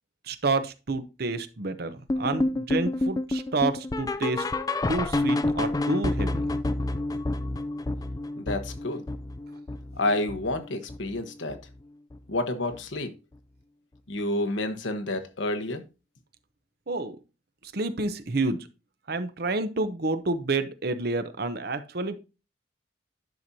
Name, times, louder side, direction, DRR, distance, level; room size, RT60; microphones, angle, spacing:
voice 1, 0.3-4.5 4.9-6.5 16.9-17.2 17.6-18.7 19.1-22.2, right 3 dB, 55° right, 0.8 m, -29 dB
sound 1, 2.1-11.2 11.5-11.8 12.1-12.2 12.7-12.8 13.3-13.4, left 2 dB, 20° left, 0.3 m, -29 dB
voice 2, 8.4-9.0 10.0-11.6 12.3-13.1 14.1-15.8, left 2 dB, 80° left, 1.2 m, -29 dB
10.5 x 6.1 x 2.8 m
head